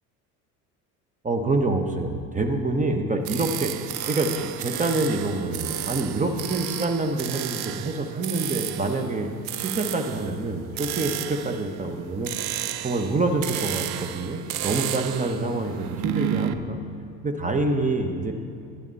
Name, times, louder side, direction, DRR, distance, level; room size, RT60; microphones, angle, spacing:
voice 1, 1.2-3.7 4.1-9.3 9.6-16.8 17.2-18.3, right 2 dB, 15° right, 5 dB, 1.1 m, -26 dB
sound 1, 3.2-16.5, right 12 dB, 55° right, 0.6 m, -32 dB
11.5 x 10.5 x 4.1 m, 2.5 s
hypercardioid pair, 70°, 44 cm